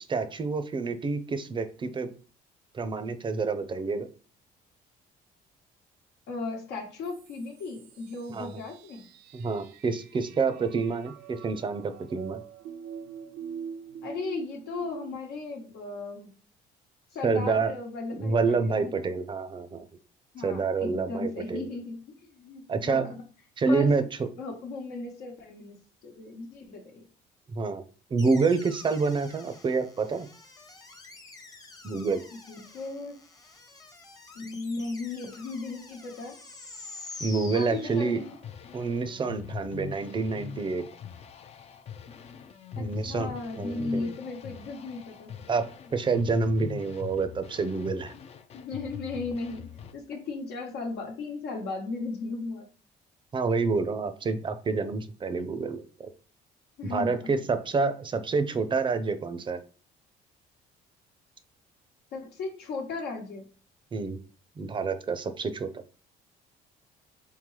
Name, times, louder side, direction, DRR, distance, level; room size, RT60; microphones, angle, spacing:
voice 1, 0.0-2.1 2.7-4.1 8.3-8.5 9.3-12.4 17.2-17.7 18.1-19.9 20.4-21.7 22.7-23.1 23.6-24.3 27.5-27.8 28.1-30.3 31.8-32.2 37.2-38.2 38.7-40.8 42.8-44.1 45.5-45.6 45.9-48.1 53.3-56.1 56.8-59.6 63.9-64.2 64.6-65.7, right 4 dB, 30° right, 10 dB, 0.5 m, -28 dB
voice 2, 6.3-9.0 14.0-16.3 17.1-19.1 20.3-23.2 23.7-23.9 24.4-25.7 26.0-27.0 32.5-33.2 34.3-36.4 37.5-38.4 42.8-45.5 48.5-52.7 56.8-57.2 62.1-63.4, left 3 dB, 80° left, 1 dB, 1.1 m, -36 dB
sound 1, 7.0-15.2, right 7 dB, 80° right, 0.5 m, -44 dB
sound 2, 28.2-38.5, left 3 dB, 20° left, 0.8 m, -47 dB
sound 3, 37.8-49.9, left 7 dB, 40° left, 0.4 m, -43 dB
3.8 x 3.6 x 3.1 m, 0.39 s
cardioid pair, 110°, 17 cm